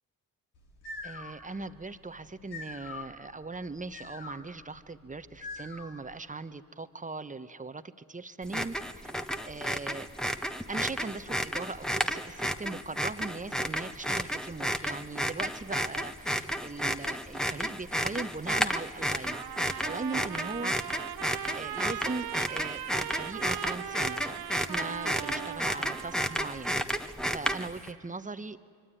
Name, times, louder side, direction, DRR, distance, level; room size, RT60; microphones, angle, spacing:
sound 1, 0.6-6.2, left 3 dB, 70° left, 3.7 m, -45 dB
voice 1, 1.0-8.7 9.4-10.1 10.7-19.4 19.8-20.7 21.5-28.6, right 3 dB, 20° right, 12 dB, 1.3 m, -39 dB
sound 2, 8.4-27.9, equal, ahead, 1.4 m, -32 dB
Trumpet, 19.3-26.8, right 11 dB, 60° right, 0.9 m, -39 dB
25.0 x 23.5 x 9.3 m, 2.3 s
hypercardioid pair, 45°, 41 cm